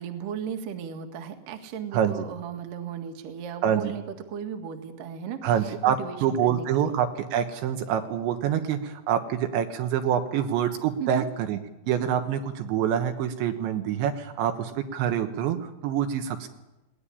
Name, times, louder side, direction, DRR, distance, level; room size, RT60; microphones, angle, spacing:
voice 1, 0.0-6.9 11.0-11.3, right 8 dB, 55° right, 6 dB, 3.0 m, -36 dB
voice 2, 1.9-2.3 3.6-3.9 5.4-11.6 11.9-16.5, right 9 dB, 75° right, 6 dB, 3.4 m, -26 dB
20.5 x 19.0 x 10.0 m, 0.99 s
omnidirectional pair, 5.4 m